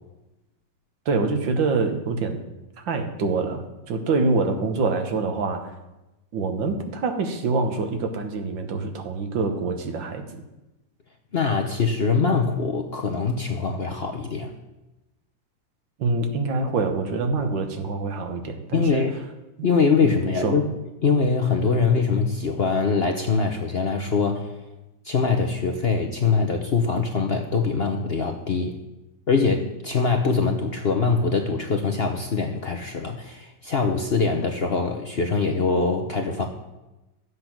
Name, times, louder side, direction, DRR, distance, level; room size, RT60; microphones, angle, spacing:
voice 1, 1.1-2.4 2.8-5.7 6.3-10.3 16.0-19.1 19.6-19.7 20.0-20.6, right 3 dB, 85° right, 6 dB, 1.9 m, -25 dB
voice 2, 11.3-14.5 18.7-19.1 19.6-20.6 21.0-24.5 25.0-28.8 29.3-36.5, left 4 dB, 50° left, 4 dB, 0.8 m, -23 dB
12.0 x 7.9 x 6.0 m, 1.0 s
omnidirectional pair, 2.0 m